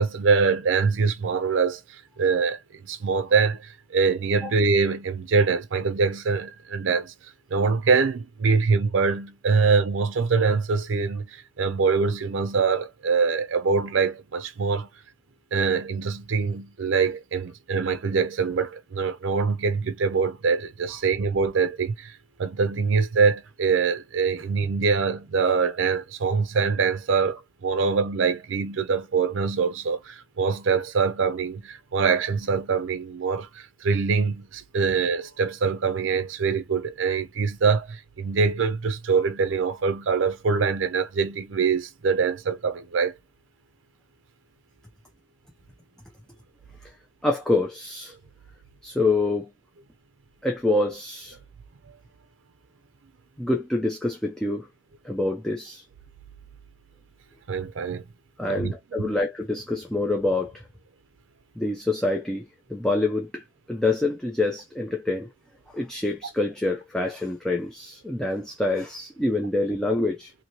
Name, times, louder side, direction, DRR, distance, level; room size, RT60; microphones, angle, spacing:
voice 1, 0.0-7.1 7.5-14.9 15.5-43.1 57.5-58.0 58.5-59.1, right 5 dB, 80° right, 0.5 m, -24 dB
voice 2, 47.2-48.1 48.8-49.5 50.4-51.4 53.4-54.7 55.0-55.8 58.4-60.6 61.6-62.4 62.7-65.3 65.7-70.3, left 2 dB, 5° left, 0.4 m, -26 dB
2.8 x 2.6 x 2.9 m
head